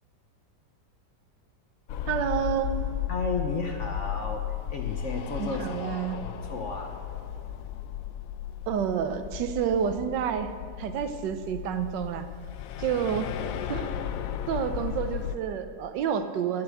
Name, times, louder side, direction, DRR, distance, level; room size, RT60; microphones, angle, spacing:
sound 1, 1.9-15.3, left 10 dB, 75° left, 0.7 m, -35 dB
voice 1, 2.1-2.8 5.4-6.2 8.7-10.5 10.8-12.3 12.8-13.3 13.7-13.9 14.5-16.6, right 8 dB, 80° right, 9 dB, 1.3 m, -29 dB
voice 2, 3.1-4.4 4.7-6.9, left 3 dB, 55° left, 3 dB, 1.0 m, -33 dB
10.0 x 6.9 x 8.0 m, 2.1 s
omnidirectional pair, 1.9 m